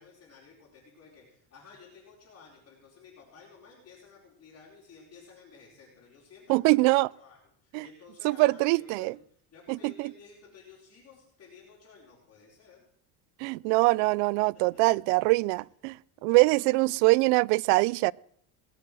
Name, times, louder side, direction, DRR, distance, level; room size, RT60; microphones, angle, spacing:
voice 1, 0.0-9.2 9.5-12.8 14.7-15.0 16.2-17.1, left 5 dB, 35° left, 4.9 m, -54 dB
voice 2, 6.5-7.1 7.7-7.9 8.2-9.2 9.7-10.1 13.4-16.0 16.2-18.1, right 24 dB, 80° right, 0.5 m, -23 dB
19.5 x 7.7 x 7.7 m
cardioid pair, 150°, 40 cm